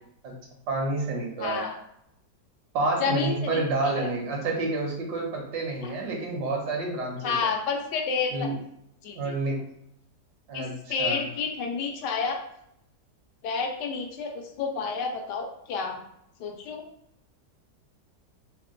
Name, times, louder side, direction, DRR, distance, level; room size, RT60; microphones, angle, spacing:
voice 1, 0.7-1.7 2.7-7.5 8.3-8.6 9.1-9.6 10.5-11.2, right 2 dB, 75° right, 0 dB, 1.4 m, -29 dB
voice 2, 1.4-1.8 3.0-4.1 5.8-5.9 7.2-8.5 9.0-9.2 10.5-12.4 13.4-16.0 16.4-16.8, left 5 dB, 80° left, 3 dB, 1.2 m, -30 dB
3.5 x 2.2 x 3.6 m, 0.77 s
omnidirectional pair, 1.8 m